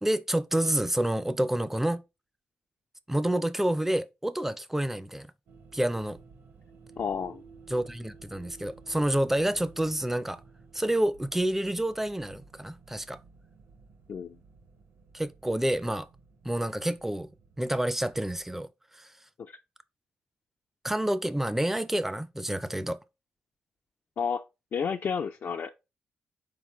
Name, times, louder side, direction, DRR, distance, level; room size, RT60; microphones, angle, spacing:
voice 1, 0.0-2.0 3.1-5.3 5.7-6.2 7.7-10.4 10.7-13.2 15.1-16.1 16.4-17.3 17.6-18.7 18.9-19.1 20.8-23.0, right 1 dB, 5° right, 0.4 m, -28 dB
sound 1, 5.5-18.4, right 4 dB, 65° right, 0.8 m, -54 dB
voice 2, 7.0-7.4 14.1-14.4 19.4-19.6 24.2-24.4 24.7-25.7, left 6 dB, 55° left, 0.4 m, -31 dB
4.2 x 3.8 x 3.0 m
cardioid pair, 90°, 4 cm